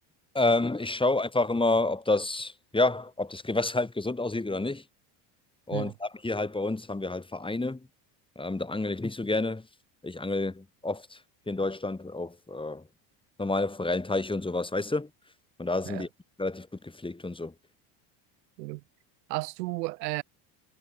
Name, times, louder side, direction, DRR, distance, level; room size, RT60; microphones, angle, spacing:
voice 1, 0.3-4.8 5.7-7.8 8.4-9.6 10.0-11.0 11.5-12.8 13.4-15.1 15.6-16.1 16.4-17.5, left 2 dB, 10° left, 5.3 m, -29 dB
voice 2, 19.3-20.2, right 22 dB, 85° right, 7.9 m, -33 dB
supercardioid pair, 100°, 48 cm